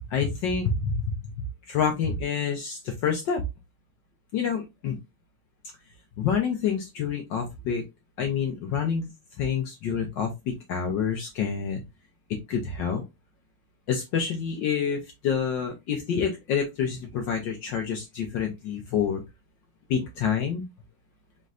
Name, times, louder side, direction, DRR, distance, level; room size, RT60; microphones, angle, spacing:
voice 1, 0.0-1.3 1.7-3.4 4.3-5.0 6.2-7.8 8.2-9.1 9.4-10.3 10.7-11.8 12.5-13.0 13.9-19.2 19.9-20.6, left 6 dB, 65° left, 3 dB, 1.3 m, -27 dB
5.3 x 3.2 x 2.4 m, 0.22 s
omnidirectional pair, 2.4 m